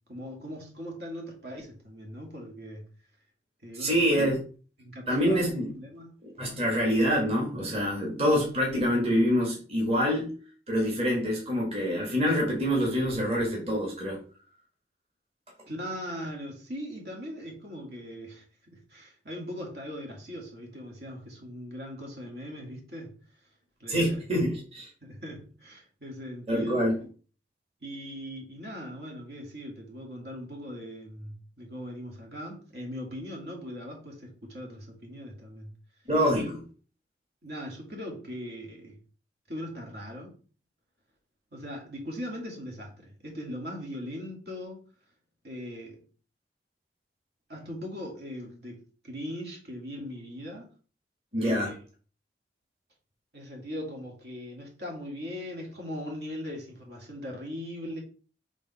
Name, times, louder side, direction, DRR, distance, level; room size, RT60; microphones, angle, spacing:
voice 1, 0.1-2.9 3.6-4.2 4.8-5.4 5.8-6.1 6.5-6.6 15.7-23.1 23.8-24.2 25.0-26.8 27.8-35.7 37.4-39.0 39.5-40.3 41.5-44.8 45.4-46.0 47.5-50.7 51.4-51.8 53.3-58.0, equal, 65° right, 2.2 m, -40 dB
voice 2, 3.8-4.4 5.1-5.7 6.4-10.3 10.7-14.2 23.9-24.9 26.5-27.0 36.1-36.6 51.3-51.7, equal, 35° right, 1.8 m, -26 dB
5.3 x 3.6 x 5.6 m
head